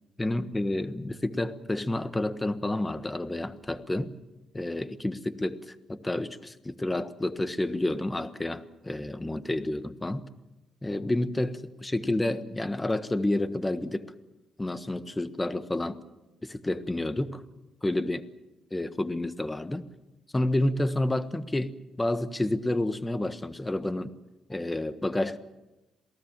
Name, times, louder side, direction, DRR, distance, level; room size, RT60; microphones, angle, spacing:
voice 1, 0.2-4.1 4.5-10.2 10.8-14.1 14.6-16.0 16.4-17.4 17.8-18.2 18.7-19.8 20.3-24.1 24.5-25.4, left 1 dB, 15° left, 12 dB, 1.4 m, -29 dB
27.5 x 18.0 x 7.5 m, 1.0 s
cardioid pair, 90°, 0 cm